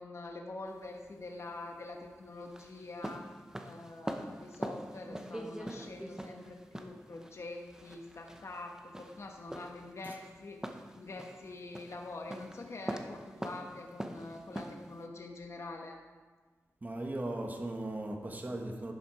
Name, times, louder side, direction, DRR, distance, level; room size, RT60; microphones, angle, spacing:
voice 1, 0.0-3.2 3.6-10.6 11.0-16.0, left 2 dB, 55° left, 2 dB, 1.2 m, -45 dB
sound 1, 0.7-15.1, right 1 dB, 10° right, 0.9 m, -44 dB
voice 2, 16.8-18.9, right 1 dB, 30° right, 2 dB, 1.6 m, -37 dB
11.5 x 7.3 x 4.9 m, 1.4 s
wide cardioid pair, 80°, 6 cm